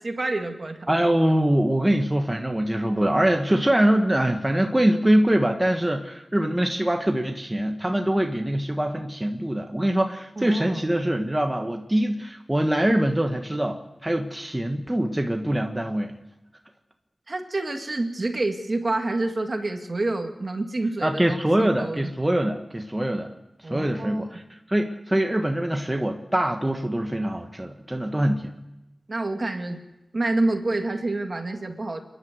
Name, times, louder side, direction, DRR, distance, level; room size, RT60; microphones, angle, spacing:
voice 1, 0.0-0.9 10.4-10.9 17.3-22.1 23.6-24.3 29.1-29.8 30.1-32.0, right 2 dB, 45° right, 5 dB, 2.1 m, -28 dB
voice 2, 0.9-16.2 21.0-23.3 23.7-24.4 24.7-28.5, right 1 dB, 15° right, 3 dB, 1.4 m, -23 dB
29.0 x 11.0 x 8.1 m, 0.95 s
wide cardioid pair, 105°, 0 cm